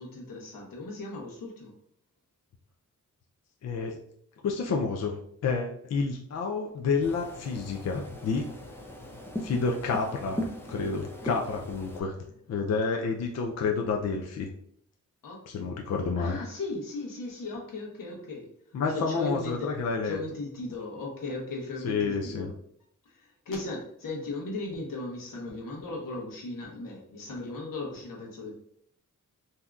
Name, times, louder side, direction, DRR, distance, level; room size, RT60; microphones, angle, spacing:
voice 1, 0.0-1.7 12.2-12.4 15.2-15.5 16.2-18.5 18.9-19.8 20.0-22.6 23.0-28.5, left 2 dB, 85° left, -1 dB, 1.0 m, -37 dB
voice 2, 3.6-3.9 4.4-5.2 5.4-8.4 9.4-10.4 10.7-12.1 12.5-14.5 15.5-16.4 18.7-20.2 21.8-22.5, left 4 dB, 55° left, 1 dB, 0.5 m, -29 dB
sound 1, 7.0-12.0, equal, 5° left, 0.5 m, -39 dB
3.5 x 2.7 x 2.3 m, 0.66 s
wide cardioid pair, 90°, 32 cm